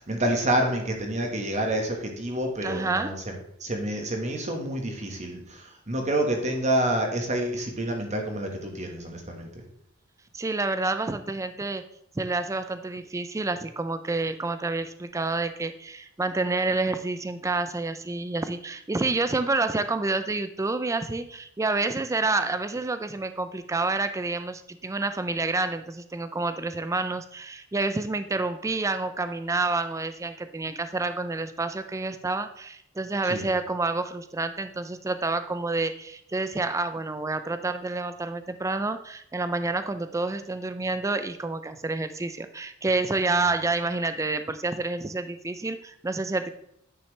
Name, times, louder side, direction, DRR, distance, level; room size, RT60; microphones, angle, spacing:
voice 1, 0.0-3.3 3.6-9.5 33.3-33.5, right 1 dB, 30° right, 3 dB, 1.4 m, -28 dB
voice 2, 2.6-3.1 10.3-11.8 12.2-46.5, right 3 dB, 15° right, 10 dB, 0.3 m, -28 dB
9.6 x 5.7 x 3.2 m, 0.73 s
head